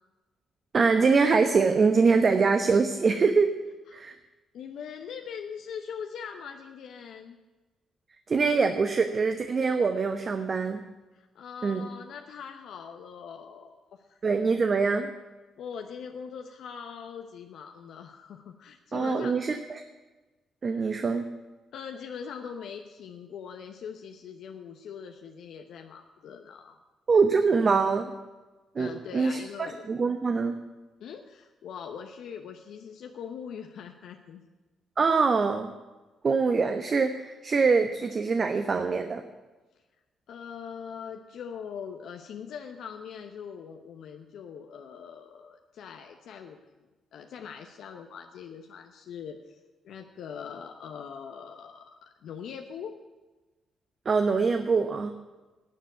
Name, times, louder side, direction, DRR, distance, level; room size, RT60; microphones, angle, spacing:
voice 1, 0.7-3.5 3.9-4.2 8.3-10.8 11.6-11.8 14.2-15.1 18.9-19.8 20.6-21.3 27.1-28.1 28.7-30.6 35.0-35.7 36.2-39.2 54.0-55.1, right 4 dB, 45° right, 7 dB, 1.0 m, -24 dB
voice 2, 4.5-7.4 11.1-14.2 15.6-19.4 21.7-26.8 28.8-29.9 31.0-34.4 40.3-46.7 47.1-49.6 49.8-53.0, left 7 dB, 70° left, 4 dB, 0.8 m, -42 dB
12.0 x 7.6 x 9.3 m, 1.2 s
hypercardioid pair, 50°, 0 cm